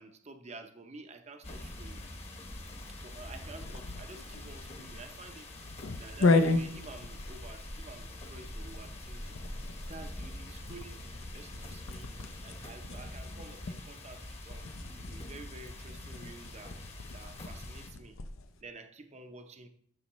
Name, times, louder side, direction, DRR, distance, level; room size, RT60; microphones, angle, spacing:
voice 1, 0.0-2.0 2.9-5.5 6.0-9.4 9.9-11.0 11.3-12.1 12.4-14.7 15.1-16.8 17.1-18.2 18.6-19.7, right 3 dB, 30° right, 7 dB, 0.7 m, -50 dB
sound 1, 1.4-17.9, left 1 dB, 30° left, 1.1 m, -45 dB
sound 2, 3.6-18.5, left 3 dB, 75° left, 0.7 m, -35 dB
12.5 x 6.2 x 3.1 m, 0.63 s
head